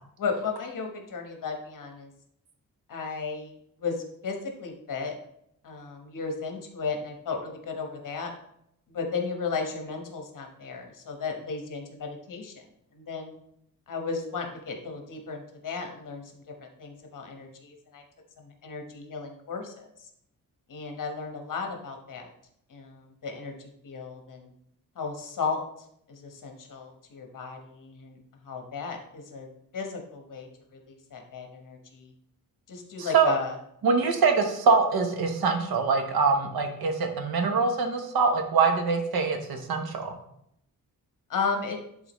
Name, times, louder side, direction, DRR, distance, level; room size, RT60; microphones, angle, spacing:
voice 1, 0.2-2.1 2.9-3.5 3.8-5.1 5.6-8.3 8.9-12.6 12.9-13.4 13.9-16.2 16.6-18.0 18.4-19.8 20.7-22.3 22.7-23.5 23.8-24.5 25.0-25.6 26.1-28.2 28.4-29.5 29.7-32.1 32.7-33.6 41.3-41.8, left 5 dB, 60° left, 3 dB, 1.2 m, -34 dB
voice 2, 33.0-33.3 33.8-40.1, right 4 dB, 85° right, 5 dB, 1.1 m, -24 dB
11.0 x 3.9 x 3.1 m, 0.74 s
wide cardioid pair, 180°, 36 cm